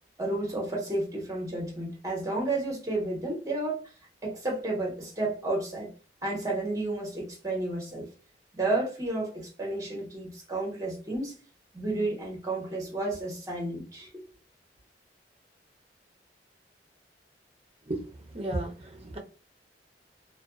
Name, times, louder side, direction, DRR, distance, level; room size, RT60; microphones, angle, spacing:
voice 1, 0.2-3.8 4.2-5.9 6.2-8.1 8.5-11.3 11.7-14.2, right 2 dB, 20° right, 1.0 m, -31 dB
voice 2, 18.3-19.2, right 1 dB, 35° right, 0.6 m, -33 dB
2.4 x 2.2 x 2.4 m
head